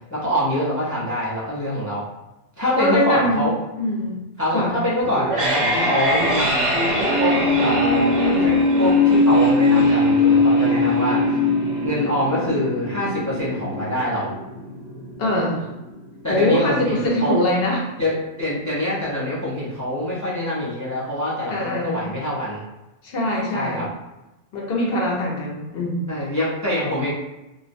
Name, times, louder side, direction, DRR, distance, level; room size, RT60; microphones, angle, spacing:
voice 1, 0.1-2.1 2.6-3.5 4.4-11.6 11.8-14.3 16.2-17.4 18.0-22.6 23.5-23.9 26.1-27.1, left 1 dB, 30° left, -8 dB, 0.3 m, -25 dB
voice 2, 2.7-4.2 4.5-4.8 15.2-15.7 16.3-17.8 21.5-22.1 23.0-23.9 24.5-26.1, left 1 dB, 60° left, -3 dB, 0.8 m, -22 dB
sound 1, 5.0-16.0, left 2 dB, 40° right, 0.5 m, -20 dB
2.4 x 2.0 x 2.5 m, 0.98 s
omnidirectional pair, 1.2 m